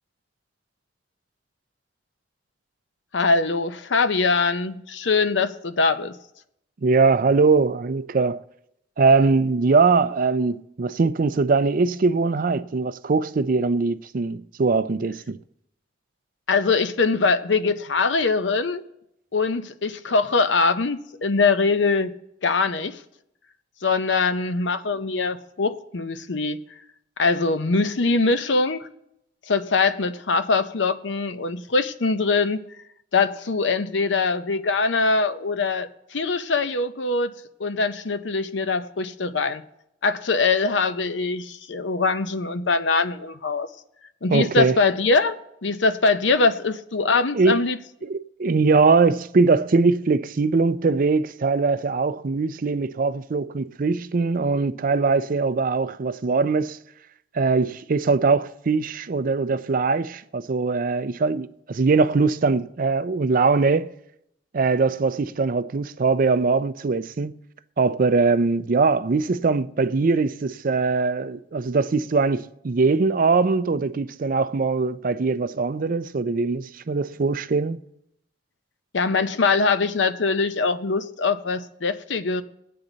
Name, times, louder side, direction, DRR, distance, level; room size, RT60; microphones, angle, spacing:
voice 1, 3.1-6.2 16.5-18.8 19.3-22.1 22.4-23.0 23.8-26.6 27.2-28.9 29.5-32.6 33.1-37.3 37.6-39.6 40.0-43.7 44.2-47.8 78.9-82.4, left 4 dB, 90° left, 0.7 m, -22 dB
voice 2, 6.8-8.4 9.0-15.4 44.3-44.8 47.3-47.6 48.0-56.8 57.3-63.9 64.5-67.3 67.8-77.8, right 4 dB, 50° right, 0.5 m, -21 dB
20.5 x 8.6 x 4.0 m
head